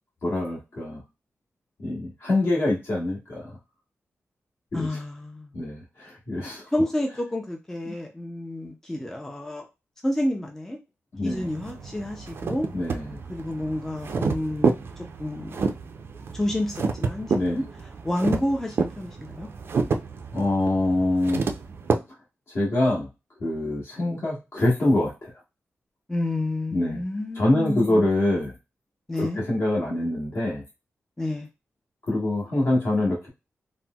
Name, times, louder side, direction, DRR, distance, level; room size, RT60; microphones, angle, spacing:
voice 1, 0.2-1.0 1.8-3.6 4.7-4.9 5.5-6.6 11.1-11.5 12.7-13.1 17.3-17.6 20.3-21.4 22.5-23.1 23.4-25.3 26.7-27.0 27.3-28.5 29.2-30.6 32.0-33.3, left 1 dB, 50° left, -5 dB, 1.3 m, -25 dB
voice 2, 4.7-5.5 6.7-9.6 10.0-10.8 11.2-12.7 13.3-15.7 16.3-17.6 18.0-19.5 26.1-28.1 29.1-29.4 31.2-31.5, left 1 dB, 10° left, 2 dB, 0.4 m, -29 dB
sound 1, 11.3-21.9, right 4 dB, 55° right, 0.4 m, -29 dB
4.1 x 2.0 x 2.2 m, 0.25 s
wide cardioid pair, 175°, 5 cm